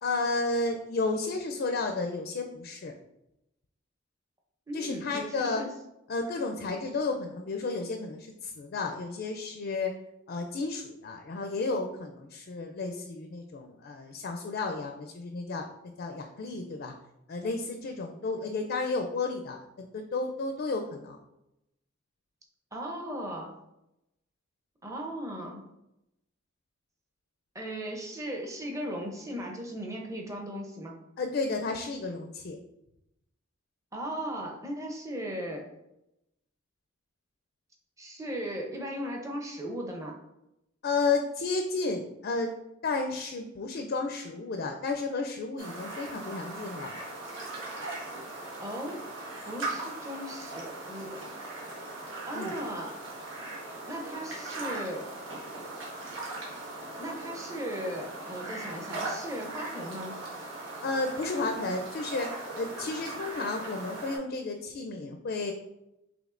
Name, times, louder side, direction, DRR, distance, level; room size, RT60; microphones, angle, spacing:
voice 1, 0.0-2.9 4.7-5.6 6.1-9.9 10.3-15.7 16.0-16.9 17.3-19.6 19.9-21.2 31.2-32.6 40.8-42.5 42.8-46.9 52.3-52.5 60.8-62.3 62.6-65.5, left 3 dB, 55° left, 4 dB, 0.4 m, -32 dB
voice 2, 4.7-5.7 22.7-23.6 24.8-25.6 27.5-31.0 33.9-35.7 38.0-40.1 48.6-49.0 49.5-51.3 52.3-53.0 53.9-55.0 57.0-60.2, equal, 15° right, 1 dB, 0.7 m, -37 dB
sound 1, 45.6-64.2, right 2 dB, 75° right, 1.3 m, -39 dB
5.1 x 3.1 x 2.5 m, 0.87 s
head